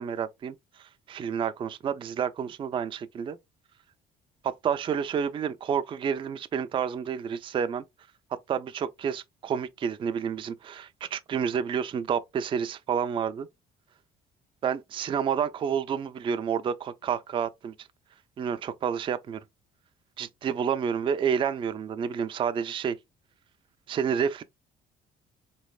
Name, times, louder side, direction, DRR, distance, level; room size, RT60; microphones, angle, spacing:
voice 1, 0.0-3.4 4.4-7.8 8.5-13.5 14.6-17.9 18.4-19.4 20.2-23.0 23.9-24.4, right 7 dB, 30° right, 0.3 m, -29 dB
4.0 x 3.1 x 2.3 m
cardioid pair, 110°, 17 cm